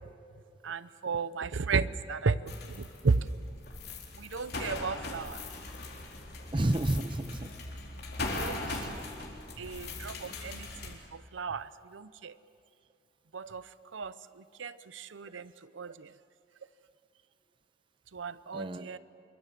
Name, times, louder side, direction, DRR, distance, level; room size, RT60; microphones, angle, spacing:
voice 1, 0.6-3.3 4.2-5.4 8.3-9.0 9.6-12.4 13.3-16.1 18.1-19.0, right 4 dB, 90° right, 15 dB, 0.7 m, -34 dB
sound 1, 2.5-10.9, left 2 dB, 55° left, 4.1 m, -40 dB
voice 2, 6.5-7.5 8.6-8.9 15.8-15.9 18.5-19.0, right 1 dB, 25° right, 11 dB, 0.8 m, -31 dB
26.5 x 23.0 x 7.5 m, 2.5 s
head